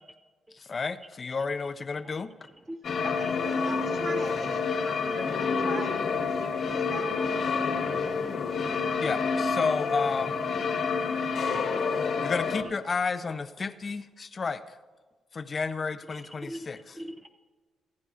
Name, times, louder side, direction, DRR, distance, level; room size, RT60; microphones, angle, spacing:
voice 1, 0.6-2.3 9.0-10.4 12.2-14.6 15.3-16.8, left 4 dB, 35° left, 0.5 m, -31 dB
sound 1, 2.8-12.6, left 5 dB, 60° left, 1.3 m, -28 dB
voice 2, 3.0-7.5, right 3 dB, 65° right, 2.5 m, -42 dB
voice 3, 16.1-17.3, equal, 10° right, 0.5 m, -42 dB
25.5 x 9.6 x 2.5 m
cardioid pair, 90°, 0 cm